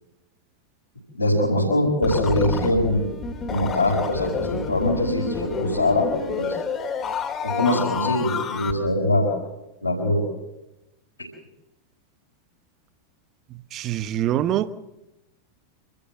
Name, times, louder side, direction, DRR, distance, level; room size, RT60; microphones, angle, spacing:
voice 1, 1.1-3.1 3.5-6.5 7.4-9.3 9.8-10.2, left 1 dB, 80° left, 5.1 m, -22 dB
sound 1, 2.0-8.7, left 5 dB, 25° left, 2.1 m, -29 dB
voice 2, 13.5-14.8, right 12 dB, 35° right, 0.9 m, -25 dB
26.5 x 14.0 x 7.6 m
figure-of-eight pair, 90°, 0 cm